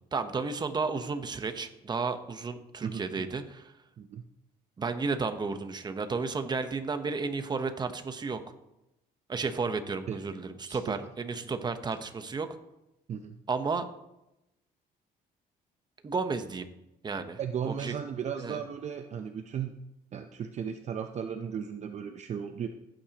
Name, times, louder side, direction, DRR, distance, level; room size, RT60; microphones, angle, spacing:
voice 1, 0.1-3.7 4.8-8.4 9.3-12.5 13.5-13.9 16.0-16.7 17.0-17.4 17.7-17.9 18.4-18.6, right 4 dB, 25° right, 8 dB, 1.0 m, -32 dB
voice 2, 2.8-3.3 4.0-4.2 10.1-10.2 10.7-10.9 13.1-13.4 17.4-19.7 20.1-22.7, right 7 dB, 45° right, 6 dB, 0.6 m, -35 dB
16.0 x 8.9 x 2.9 m, 0.91 s
cardioid pair, 110°, 17 cm